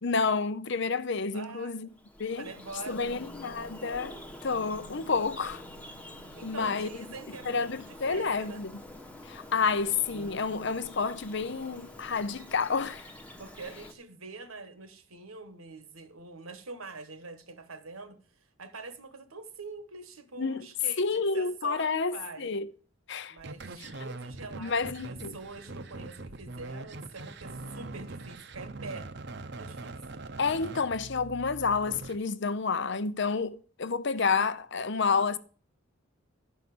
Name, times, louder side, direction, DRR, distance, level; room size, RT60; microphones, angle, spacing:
voice 1, 0.0-1.9 2.2-2.5 2.9-5.6 6.4-7.0 7.5-8.7 9.3-13.1 20.4-20.6 21.0-22.7 23.1-23.3 24.6-25.3 30.4-35.4, left 4 dB, 55° left, 0.7 m, -29 dB
voice 2, 1.3-1.9 2.3-3.2 6.4-8.7 13.4-18.2 18.6-22.5 23.3-29.1 29.6-30.2, right 3 dB, 75° right, 1.5 m, -44 dB
Bird vocalization bird call bird song, 1.9-13.9, left 1 dB, 5° left, 1.1 m, -47 dB
sound 1, 23.4-32.2, right 2 dB, 50° right, 0.8 m, -42 dB
12.0 x 5.6 x 7.7 m
head